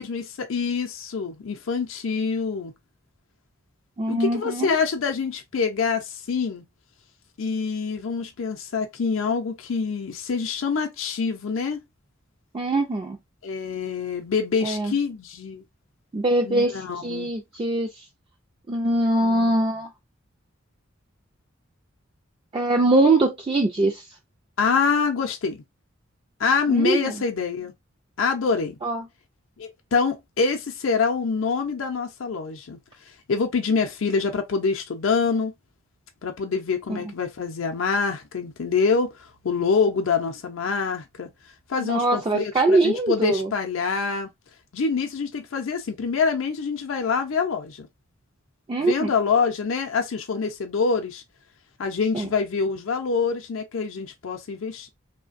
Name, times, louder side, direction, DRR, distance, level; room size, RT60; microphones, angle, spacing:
voice 1, 0.0-2.7 4.1-6.6 7.4-11.8 13.4-15.6 16.4-17.3 19.2-19.7 24.6-25.6 26.4-27.7 28.2-28.7 29.6-32.8 33.1-35.5 36.2-41.3 41.7-44.3 44.7-47.9 48.8-51.2 51.8-54.9, left 5 dB, 70° left, 0.5 m, -25 dB
voice 2, 4.0-4.8 12.5-13.2 14.6-14.9 16.1-17.9 18.7-19.9 22.5-24.0 26.7-27.1 28.8-29.0 36.9-37.0 41.8-43.5 48.7-49.1 52.1-52.3, right 2 dB, 25° right, 0.4 m, -22 dB
3.1 x 2.1 x 2.5 m
head